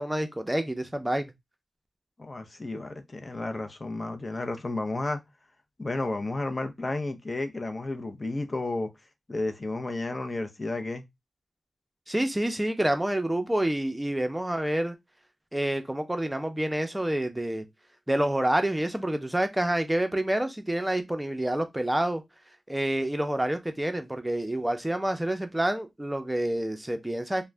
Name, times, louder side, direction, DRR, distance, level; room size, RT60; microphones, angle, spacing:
voice 1, 0.0-1.3 12.1-15.0 15.5-17.6 18.1-22.2 22.7-27.5, right 1 dB, 15° right, 0.6 m, -28 dB
voice 2, 2.2-5.2 5.8-8.9 9.3-11.0, left 2 dB, 40° left, 0.6 m, -32 dB
2.4 x 2.1 x 3.2 m
cardioid pair, 50°, 0 cm